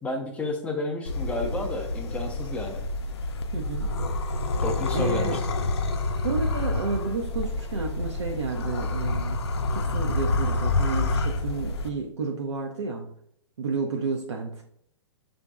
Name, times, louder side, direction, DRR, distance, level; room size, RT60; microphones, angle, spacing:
voice 1, 0.0-2.8 4.6-5.4, left 2 dB, 10° left, 3 dB, 0.4 m, -31 dB
sound 1, 1.1-11.9, left 2 dB, 60° left, 0.5 m, -28 dB
voice 2, 3.5-3.9 4.9-5.4 6.2-9.4 9.7-13.1 13.6-14.6, right 4 dB, 65° right, 1 dB, 0.5 m, -31 dB
5.7 x 2.5 x 2.3 m, 0.70 s
figure-of-eight pair, 115°, 15 cm